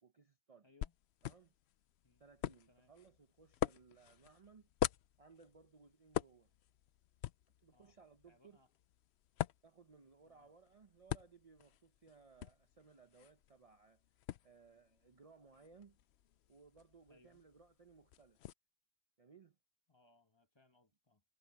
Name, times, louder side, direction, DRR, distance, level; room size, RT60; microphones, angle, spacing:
voice 1, 0.0-0.7 1.2-1.5 2.2-4.7 5.2-6.5 7.6-8.6 9.6-14.0 14.4-16.0 16.5-18.4 19.2-19.6, right 5 dB, 35° right, 0.7 m, -63 dB
voice 2, 0.6-0.9 2.0-2.2 2.7-2.9 7.7-8.0 8.3-8.7 10.2-10.5 17.1-17.4 19.9-21.2, left 2 dB, 20° left, 1.4 m, -70 dB
sound 1, 0.8-18.5, left 11 dB, 65° left, 0.8 m, -46 dB
omnidirectional pair, 1.3 m